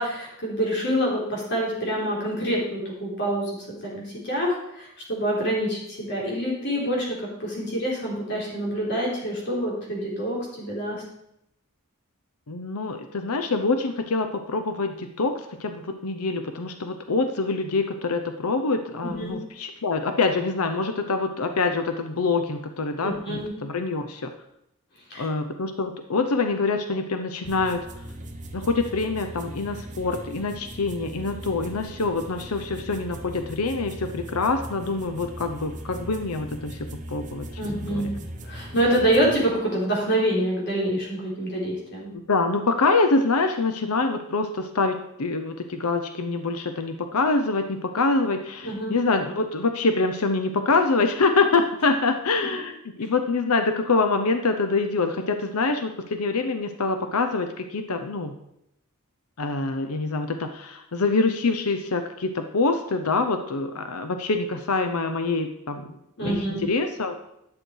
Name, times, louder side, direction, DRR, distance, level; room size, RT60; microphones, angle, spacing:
voice 1, 0.0-3.5 3.8-11.0 19.0-19.4 23.0-23.5 25.1-25.3 37.6-38.1 38.4-42.1 48.6-49.0 66.2-66.6, right 1 dB, 55° left, -3 dB, 3.6 m, -26 dB
voice 2, 12.5-24.3 25.1-27.9 28.5-37.5 37.8-38.1 42.1-52.7 53.0-58.4 59.4-67.2, left 3 dB, 75° left, 7 dB, 0.8 m, -25 dB
sound 1, 27.4-39.5, right 1 dB, 35° right, 1.0 m, -39 dB
10.5 x 6.4 x 4.7 m, 0.79 s
head